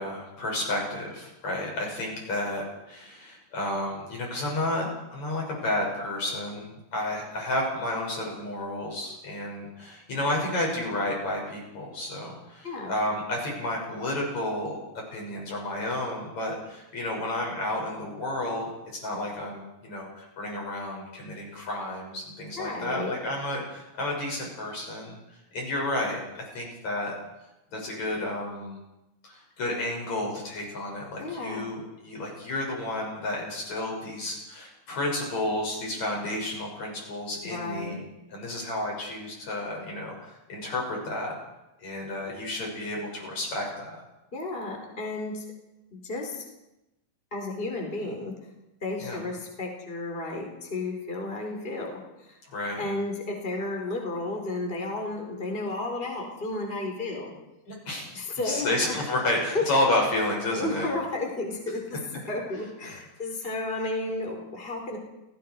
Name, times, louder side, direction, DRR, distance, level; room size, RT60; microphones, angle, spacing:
voice 1, 0.0-14.8 15.1-18.7 19.0-25.2 25.5-27.1 27.7-28.8 29.2-41.4 41.8-44.0 49.0-49.2 52.5-52.9 57.7-58.1 58.4-60.9 62.9-63.0, left 1 dB, 40° left, -1 dB, 7.7 m, -31 dB
voice 2, 12.6-12.9 22.5-23.1 31.2-31.7 37.4-38.0 44.3-45.4 45.9-46.4 47.3-48.3 48.8-52.4 52.8-57.3 58.1-58.9 60.5-62.0 62.3-65.0, left 2 dB, 15° left, 1 dB, 4.1 m, -33 dB
29.0 x 18.5 x 4.8 m, 0.93 s
omnidirectional pair, 4.7 m